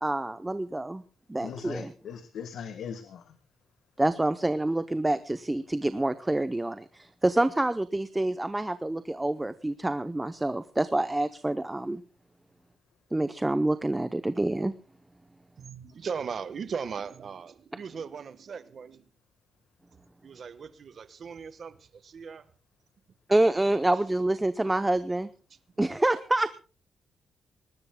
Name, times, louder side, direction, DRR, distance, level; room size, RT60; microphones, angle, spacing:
voice 1, 0.0-1.0 1.3-1.9 4.0-12.0 13.1-14.7 23.3-25.3 25.8-26.6, right 1 dB, 10° right, 0.6 m, -27 dB
voice 2, 1.4-3.4, left 7 dB, 60° left, 1.4 m, -39 dB
voice 3, 15.6-19.1 20.2-22.5, right 6 dB, 40° right, 1.2 m, -38 dB
24.0 x 19.5 x 2.2 m
wide cardioid pair, 175°, 0 cm